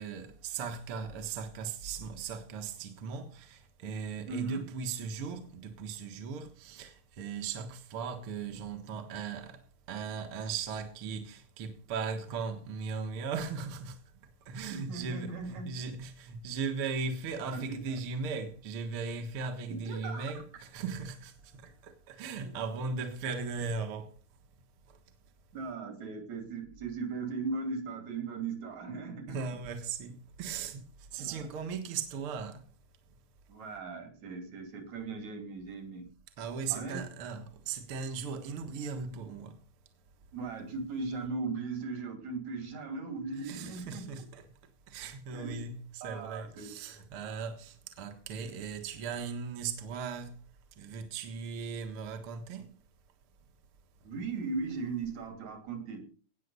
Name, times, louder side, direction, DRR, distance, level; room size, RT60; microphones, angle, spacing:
voice 1, 0.0-9.6 9.9-14.0 14.5-21.3 21.8-24.1 29.3-30.8 31.1-32.6 36.4-39.6 43.4-44.4 44.9-50.3 50.8-52.7, right 5 dB, 55° right, 2.1 m, -38 dB
voice 2, 4.3-4.6 14.7-15.7 17.5-18.0 19.9-20.3 25.5-29.4 31.2-31.5 33.5-36.1 36.7-37.1 40.3-44.1 45.3-45.7 46.0-46.7 54.0-56.1, right 4 dB, 70° right, 4.0 m, -38 dB
18.0 x 7.5 x 5.4 m
omnidirectional pair, 3.3 m